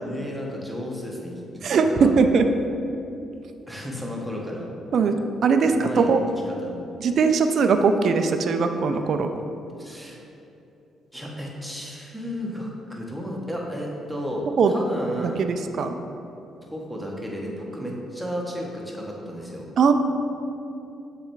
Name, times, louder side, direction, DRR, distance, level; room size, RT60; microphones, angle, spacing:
voice 1, 0.0-2.1 3.7-4.7 4.9-5.2 5.7-6.1 6.5-6.8 9.8-10.2 11.1-15.5 16.6-19.7, equal, 5° right, -2 dB, 1.1 m, -33 dB
voice 2, 1.6-2.4 4.9-5.1 5.4-6.2 7.0-9.3 14.6-14.7 15.2-15.3 15.8-15.9 19.8-19.9, right 5 dB, 60° right, 7 dB, 0.4 m, -20 dB
7.1 x 3.3 x 4.6 m, 2.7 s
cardioid pair, 90°, 0 cm